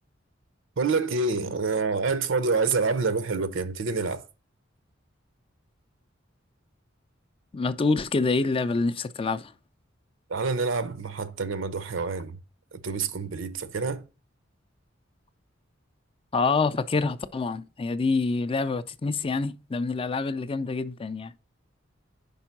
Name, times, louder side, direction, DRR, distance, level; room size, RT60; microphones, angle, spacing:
voice 1, 0.8-4.2 10.3-12.4 12.7-14.0, right 4 dB, 75° right, 0.7 m, -27 dB
voice 2, 7.5-9.5 16.3-21.3, left 4 dB, 30° left, 0.4 m, -26 dB
5.4 x 4.4 x 5.9 m
head